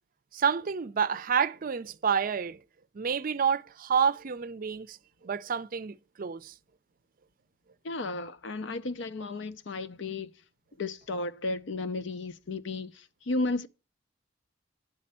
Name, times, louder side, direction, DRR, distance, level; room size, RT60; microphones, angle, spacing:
voice 1, 0.3-2.6 2.9-5.0 5.2-6.5, right 7 dB, 45° right, 0.5 m, -29 dB
voice 2, 7.8-10.3 10.8-13.7, left 3 dB, 70° left, 0.6 m, -33 dB
10.5 x 4.3 x 7.3 m
head